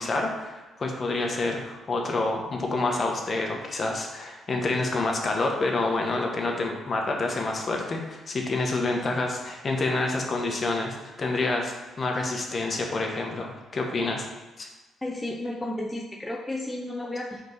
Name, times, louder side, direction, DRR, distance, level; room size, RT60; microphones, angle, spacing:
voice 1, 0.0-14.3 14.6-14.7, left 2 dB, 40° left, 1 dB, 1.1 m, -28 dB
voice 2, 15.0-17.4, left 1 dB, 15° left, -1 dB, 0.6 m, -32 dB
4.5 x 4.0 x 5.5 m, 1.2 s
cardioid pair, 90°, 0 cm